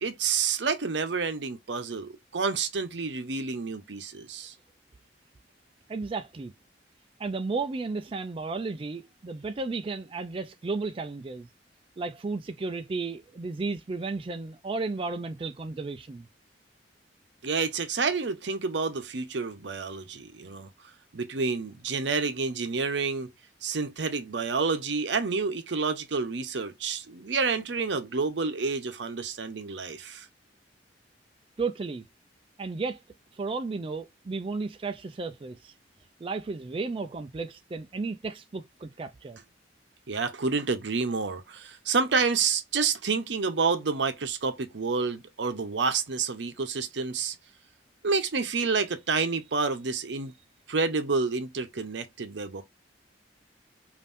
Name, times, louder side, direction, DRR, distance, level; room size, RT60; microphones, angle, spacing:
voice 1, 0.0-4.5 17.4-20.7 21.1-23.3 23.6-30.3 40.1-47.4 48.0-50.3 50.7-52.6, right 4 dB, 75° right, 0.7 m, -29 dB
voice 2, 5.9-6.5 7.2-11.5 12.0-16.3 31.6-32.1 32.6-33.0 33.3-35.7 36.2-39.4, right 3 dB, 30° right, 0.4 m, -33 dB
5.4 x 2.6 x 2.5 m
head